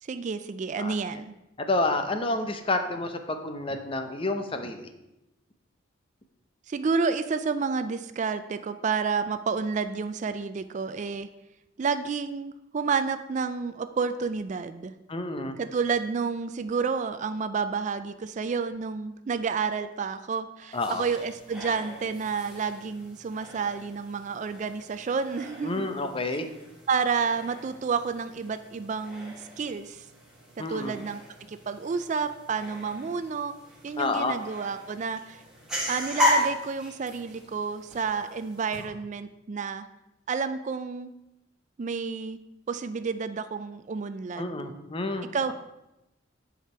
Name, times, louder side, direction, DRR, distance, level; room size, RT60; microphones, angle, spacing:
voice 1, 0.1-1.3 6.7-11.3 11.8-14.9 15.6-25.9 26.9-30.0 30.6-31.2 31.5-33.5 33.8-35.4 35.9-39.8 40.3-41.1 41.8-42.4 42.7-44.6 45.3-45.5, right 5 dB, 40° right, 11 dB, 0.3 m, -30 dB
voice 2, 1.7-4.9 15.1-15.6 20.7-21.0 25.6-26.5 30.6-30.9 34.0-34.4 44.4-45.5, left 2 dB, 30° left, 7 dB, 0.8 m, -29 dB
sound 1, 20.7-38.8, left 1 dB, 5° right, 2.5 m, -36 dB
9.7 x 5.1 x 5.5 m, 0.92 s
head